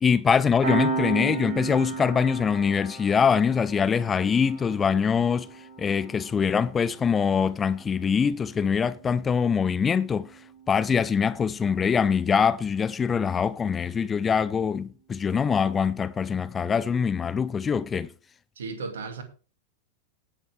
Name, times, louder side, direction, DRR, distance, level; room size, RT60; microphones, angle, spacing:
voice 1, 0.0-5.5 5.8-10.3 10.7-18.1, left 6 dB, 20° left, 0.6 m, -23 dB
Piano, 0.6-11.7, right 4 dB, 45° right, 7.1 m, -36 dB
voice 2, 18.6-19.2, right 4 dB, 65° right, 2.4 m, -34 dB
18.0 x 7.2 x 3.5 m
figure-of-eight pair, 90°, 0 cm